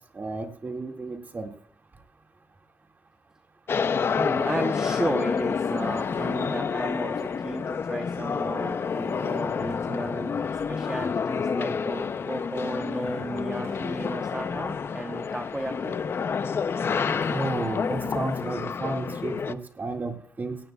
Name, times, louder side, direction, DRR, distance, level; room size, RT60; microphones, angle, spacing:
voice 1, 0.1-1.5 5.9-6.0 17.3-20.6, right 3 dB, 35° right, 4 dB, 2.0 m, -32 dB
sound 1, 3.7-19.5, left 6 dB, 45° left, 0.5 m, -29 dB
voice 2, 4.1-16.0, right 2 dB, 15° right, 5 dB, 0.9 m, -34 dB
sound 2, 5.6-8.2 8.5-11.0 11.6-12.3 12.5-12.6 12.9-15.5 15.9-16.3 16.7-19.3, right 2 dB, 55° right, 6.6 m, -49 dB
17.5 x 17.5 x 2.3 m, 0.65 s
wide cardioid pair, 130°, 6 cm